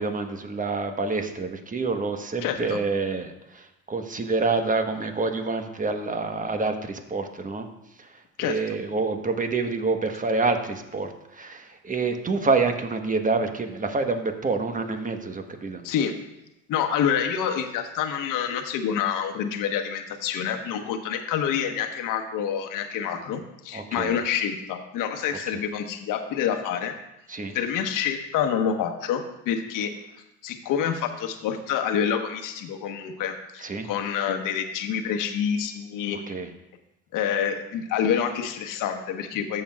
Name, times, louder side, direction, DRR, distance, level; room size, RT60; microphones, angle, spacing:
voice 1, 0.0-7.7 8.0-15.8 23.7-24.1 27.3-27.6 33.6-33.9 36.3-36.5, right 3 dB, 20° right, 6 dB, 1.2 m, -27 dB
voice 2, 2.4-2.8 8.4-8.6 15.8-16.1 16.7-26.9 27.5-29.9 30.4-36.2 37.1-39.6, left 8 dB, 60° left, 5 dB, 1.3 m, -27 dB
14.0 x 7.0 x 2.4 m, 0.90 s
hypercardioid pair, 75°, 37 cm